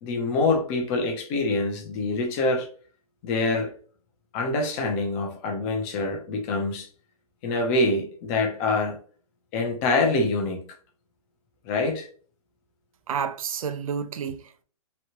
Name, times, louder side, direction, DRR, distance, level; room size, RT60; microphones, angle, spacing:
voice 1, 0.0-2.7 3.2-3.7 4.3-6.9 7.4-9.0 9.5-10.6 11.6-12.1, left 2 dB, 20° left, 0.6 m, -25 dB
voice 2, 13.1-14.6, right 7 dB, 65° right, 0.4 m, -30 dB
3.0 x 2.3 x 2.9 m
hypercardioid pair, 155°, 19 cm